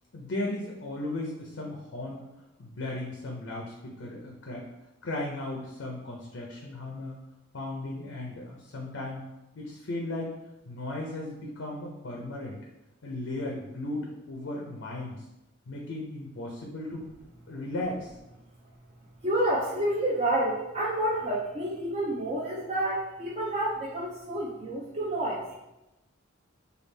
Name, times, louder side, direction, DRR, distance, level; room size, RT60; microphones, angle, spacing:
voice 1, 0.1-2.2 2.6-4.6 5.0-7.2 7.5-9.2 9.6-10.3 10.7-12.6 13.0-15.2 15.7-17.0 17.5-18.1, left 2 dB, 65° left, -1 dB, 0.5 m, -36 dB
voice 2, 19.2-25.6, right 1 dB, 30° right, -5 dB, 0.4 m, -29 dB
3.3 x 2.3 x 3.2 m, 0.94 s
head